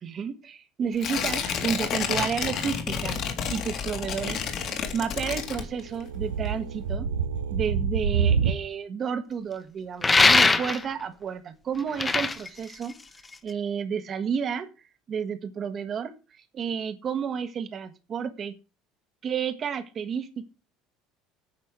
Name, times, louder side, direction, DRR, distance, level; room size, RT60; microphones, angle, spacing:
voice 1, 0.0-3.2 3.5-4.4 4.9-7.1 7.5-13.0 13.4-14.7 15.1-16.1 16.5-18.5 19.2-20.5, right 7 dB, 40° right, 11 dB, 1.5 m, -31 dB
Tearing, 1.0-6.1 6.5-6.6, left 7 dB, 55° left, 2.3 m, -30 dB
sound 1, 5.7-8.6, right 6 dB, 80° right, 0.7 m, -26 dB
sound 2, 10.0-11.0 11.8-13.5, left 3 dB, 20° left, 1.1 m, -21 dB
9.6 x 6.0 x 6.2 m, 0.32 s
hypercardioid pair, 65°, 0 cm